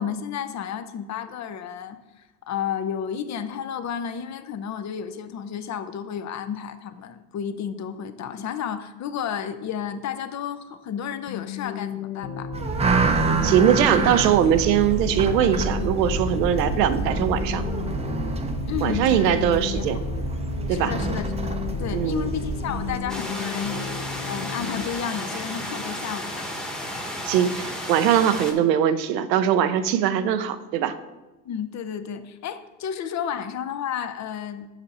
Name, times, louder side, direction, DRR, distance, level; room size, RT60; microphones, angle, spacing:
voice 1, 0.0-2.0 2.5-12.5 16.7-16.8 18.7-19.5 19.7-20.0 20.7-26.5 31.4-34.7, left 8 dB, 35° left, 10 dB, 0.6 m, -32 dB
sound 1, 11.3-24.9, left 8 dB, 85° left, 0.8 m, -34 dB
sound 2, 12.5-23.0, right 3 dB, 15° right, 0.5 m, -27 dB
voice 2, 13.4-17.6 18.8-20.0 20.7-20.9 21.9-22.3 27.3-31.0, right 9 dB, 90° right, 12 dB, 0.7 m, -21 dB
sound 3, 23.1-28.5, equal, ahead, 1.0 m, -33 dB
6.9 x 5.2 x 4.2 m, 1.1 s
supercardioid pair, 90°, 48 cm